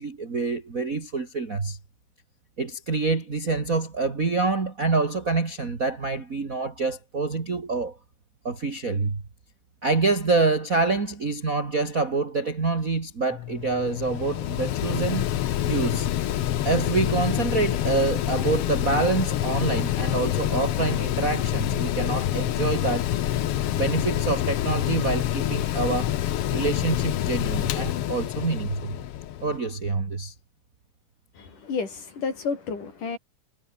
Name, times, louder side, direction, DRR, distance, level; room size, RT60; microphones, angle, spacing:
voice 1, 0.0-1.8 2.6-8.0 8.4-9.2 9.8-15.3 15.6-16.1 16.6-23.1 23.7-26.1 26.5-28.9 29.4-30.3, right 3 dB, 30° right, 2.5 m, -26 dB
Mechanical fan, 13.3-29.6, left 12 dB, 65° left, 1.6 m, -27 dB
voice 2, 31.3-33.2, left 5 dB, 85° left, 6.5 m, -31 dB
omnidirectional pair, 3.6 m